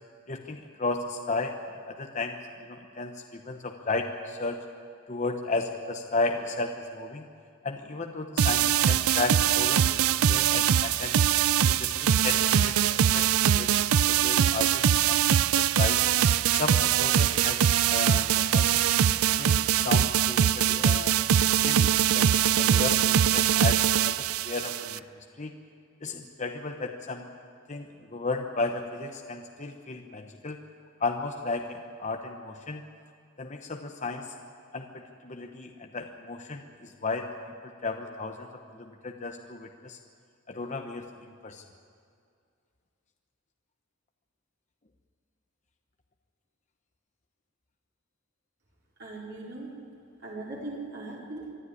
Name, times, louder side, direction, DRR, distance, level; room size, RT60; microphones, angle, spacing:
voice 1, 0.3-2.4 2.7-4.6 5.1-7.3 7.6-9.9 10.3-15.2 15.6-16.0 16.5-18.8 19.4-21.2 21.6-25.0 25.4-25.5 26.0-27.3 27.7-30.6 31.0-32.8 33.4-34.3 34.7-37.3 37.6-38.5 38.8-40.0 40.5-41.0 41.4-41.6, left 3 dB, 35° left, 4 dB, 0.9 m, -34 dB
sound 1, 8.4-25.0, right 9 dB, 80° right, 0.5 m, -23 dB
voice 2, 49.0-49.7 50.2-51.5, right 2 dB, 50° right, -4 dB, 4.4 m, -39 dB
25.0 x 12.5 x 9.9 m, 2.3 s
head